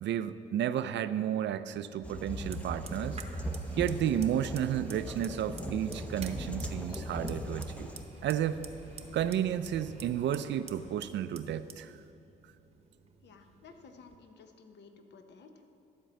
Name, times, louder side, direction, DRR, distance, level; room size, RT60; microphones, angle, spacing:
voice 1, 0.0-3.2 3.8-7.9 8.2-8.7 9.1-12.0, right 10 dB, 65° right, 13 dB, 0.5 m, -32 dB
sound 1, 2.0-8.0, equal, 5° left, 0.6 m, -39 dB
Fire, 2.3-14.2, right 4 dB, 30° right, 0.9 m, -51 dB
sound 2, 6.1-11.1, equal, 30° left, 1.7 m, -53 dB
voice 2, 13.2-15.6, left 4 dB, 60° left, 6 dB, 0.9 m, -54 dB
12.5 x 4.5 x 7.4 m, 2.7 s
cardioid pair, 90°, 20 cm